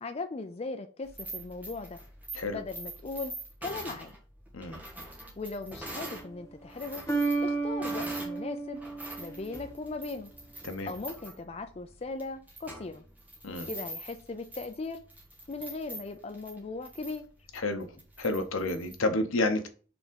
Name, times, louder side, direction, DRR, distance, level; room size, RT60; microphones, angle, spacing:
voice 1, 0.0-2.0 2.5-3.3 3.6-4.1 5.4-7.0 7.4-8.8 9.2-10.3 10.9-13.0 13.6-15.0 15.5-17.3, left 3 dB, 30° left, 0.4 m, -38 dB
sound 1, 1.0-6.3 6.6-8.4 8.7-19.0, right 1 dB, 10° right, 1.4 m, -44 dB
sound 2, 5.9-6.4 7.1-10.0, right 3 dB, 15° left, 1.0 m, -32 dB
voice 2, 17.5-17.9 18.2-19.7, left 2 dB, 80° left, 0.9 m, -30 dB
5.0 x 3.6 x 5.2 m
head